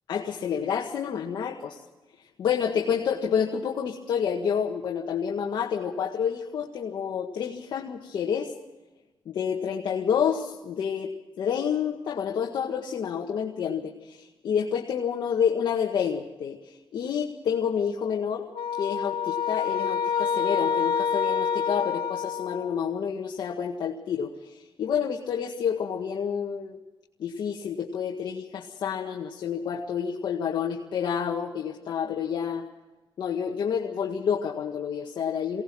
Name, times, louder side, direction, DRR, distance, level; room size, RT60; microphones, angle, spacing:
voice 1, 0.1-1.8 2.4-8.5 9.3-26.8 27.2-32.6 33.2-35.6, left 7 dB, 60° left, 0 dB, 1.8 m, -29 dB
sound 1, 18.5-23.0, left 7 dB, 90° left, 1.6 m, -27 dB
23.5 x 18.0 x 6.2 m, 1.1 s
wide cardioid pair, 175°, 9 cm